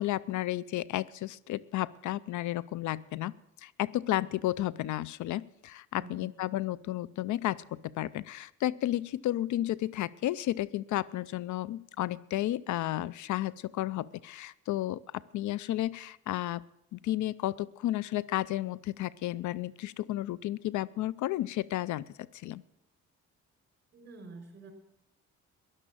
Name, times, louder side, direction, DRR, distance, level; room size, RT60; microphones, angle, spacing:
voice 1, 0.0-3.3 3.6-16.6 16.9-22.1 22.3-22.6, left 14 dB, 75° left, 21 dB, 0.5 m, -32 dB
voice 2, 5.9-6.3 23.9-24.7, right 3 dB, 40° right, 4 dB, 5.0 m, -48 dB
13.0 x 11.0 x 7.5 m, 0.81 s
cardioid pair, 90°, 30 cm